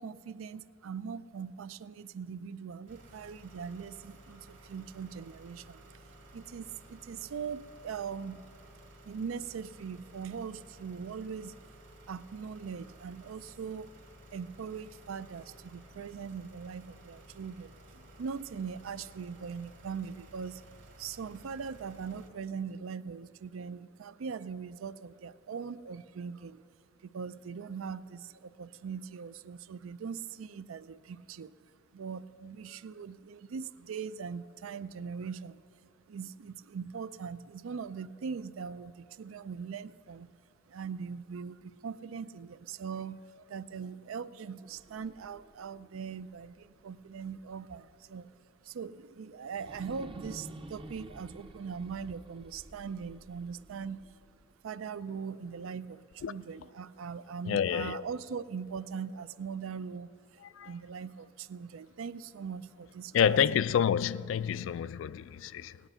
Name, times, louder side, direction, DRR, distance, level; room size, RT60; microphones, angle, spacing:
voice 1, 0.0-5.9 6.3-8.4 9.0-11.6 12.1-13.9 14.3-20.7 21.0-26.6 27.0-31.5 31.9-40.3 40.7-48.3 48.6-54.2 54.6-63.4, right 6 dB, 90° right, 0.4 m, -41 dB
sound 1, 2.9-22.3, right 1 dB, 65° right, 2.1 m, -55 dB
sound 2, 44.6-47.6 48.0-48.1 49.5-54.6, right 1 dB, 25° right, 0.5 m, -51 dB
voice 2, 57.5-58.0 60.4-60.7 63.1-65.8, left 8 dB, 70° left, 0.3 m, -28 dB
17.0 x 10.5 x 5.6 m
head